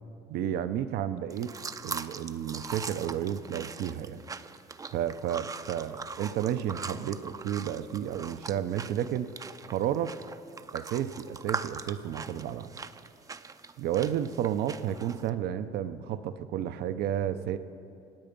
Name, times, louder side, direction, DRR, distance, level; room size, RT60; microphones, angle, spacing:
voice 1, 0.3-1.5 1.8-4.2 4.9-9.3 9.7-10.2 10.7-12.7 13.8-17.6, right 10 dB, 75° right, 11 dB, 0.6 m, -32 dB
sound 1, 1.3-15.3, right 4 dB, 20° right, 0.5 m, -41 dB
26.0 x 9.0 x 5.3 m, 2.5 s
cardioid pair, 110°, 17 cm